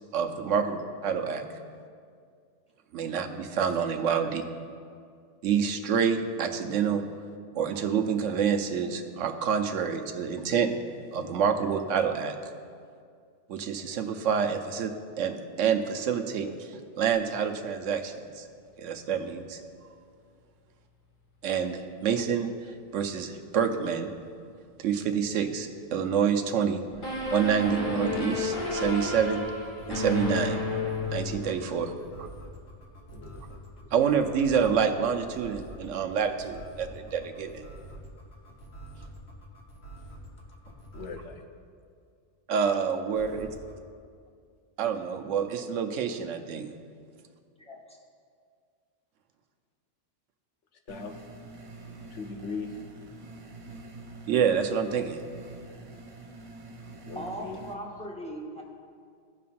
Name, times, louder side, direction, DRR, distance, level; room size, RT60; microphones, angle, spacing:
voice 1, 0.1-1.5 2.9-4.4 5.4-7.0 7.5-10.7 11.1-12.4 13.5-14.9 15.2-18.5 18.8-19.6 21.4-24.1 24.8-26.8 27.3-29.4 29.9-30.6 31.1-31.9 32.2-32.3 33.9-37.7 42.5-43.5 44.8-46.7 54.3-55.2, right 7 dB, 85° right, 5 dB, 1.0 m, -27 dB
sound 1, 26.9-41.3 43.1-43.7, right 1 dB, 55° left, 1.7 m, -46 dB
sound 2, 27.0-31.7, left 3 dB, 40° left, 1.5 m, -31 dB
voice 2, 31.6-32.1 33.1-33.9 40.9-41.4 50.9-51.1 52.1-52.7 57.0-57.6, left 5 dB, 75° left, 4 dB, 1.1 m, -40 dB
voice 3, 47.6-48.0 57.1-58.6, right 1 dB, 5° left, -2 dB, 0.9 m, -39 dB
sound 3, 50.9-57.7, right 2 dB, 40° right, 0.5 m, -46 dB
16.5 x 5.5 x 2.5 m, 2.2 s
omnidirectional pair, 1.3 m